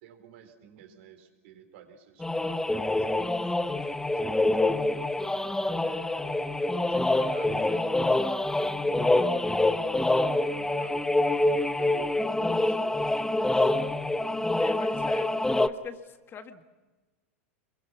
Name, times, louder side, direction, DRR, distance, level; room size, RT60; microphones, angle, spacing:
voice 1, 0.0-4.4 4.7-5.2 5.8-6.3 6.6-7.9 8.7-9.5 10.3-14.0 15.1-15.5, right 8 dB, 65° right, 6 dB, 4.2 m, -50 dB
sound 1, 2.2-15.7, left 2 dB, 5° left, 1.0 m, -26 dB
voice 2, 14.6-15.3 15.6-16.6, left 7 dB, 30° left, 8 dB, 1.8 m, -42 dB
27.0 x 23.5 x 6.1 m, 1.2 s
hypercardioid pair, 100°, 7 cm